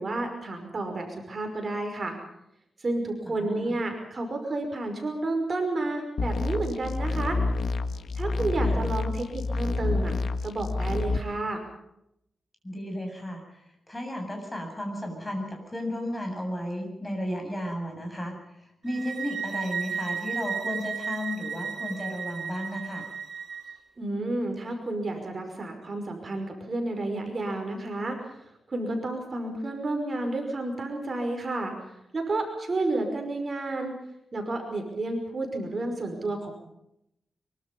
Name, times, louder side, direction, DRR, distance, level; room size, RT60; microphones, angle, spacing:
voice 1, 0.0-2.2 2.8-7.4 8.1-10.2 10.4-11.6 24.0-28.2 28.7-31.7 32.1-33.9 34.3-36.5, right 2 dB, 40° right, 4 dB, 5.5 m, -31 dB
voice 2, 3.3-3.8 8.6-8.8 12.6-23.1, equal, 15° left, 3 dB, 7.9 m, -34 dB
sound 1, 6.2-11.2, left 3 dB, 75° left, 1.6 m, -28 dB
sound 2, 18.9-23.8, right 6 dB, 65° right, 4.5 m, -34 dB
24.5 x 24.0 x 5.5 m, 0.79 s
wide cardioid pair, 115°, 0 cm